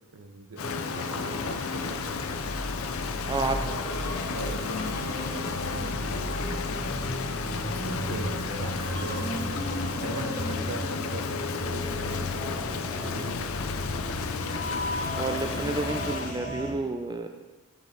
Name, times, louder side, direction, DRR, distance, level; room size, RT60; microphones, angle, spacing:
voice 1, 0.1-2.2 4.3-7.0 7.8-13.5, right 3 dB, 75° right, 8 dB, 0.8 m, -42 dB
Rain, 0.6-16.4, left 5 dB, 65° left, 0.6 m, -33 dB
sound 1, 0.6-16.7, left 1 dB, 35° left, 1.6 m, -34 dB
voice 2, 3.3-3.8 15.2-17.3, right 3 dB, 20° right, 6 dB, 0.5 m, -30 dB
12.5 x 5.1 x 4.5 m, 1.3 s
head